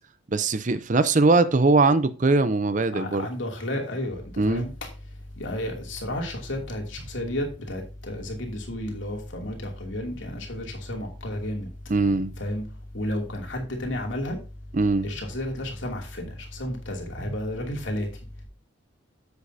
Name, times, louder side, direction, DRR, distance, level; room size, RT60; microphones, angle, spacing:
voice 1, 0.3-3.3 4.4-4.6 11.9-12.3 14.7-15.1, right 3 dB, 40° right, 0.6 m, -21 dB
voice 2, 2.9-11.7 12.4-14.7 15.0-18.4, left 1 dB, 70° left, 2.7 m, -32 dB
10.0 x 8.1 x 2.7 m
head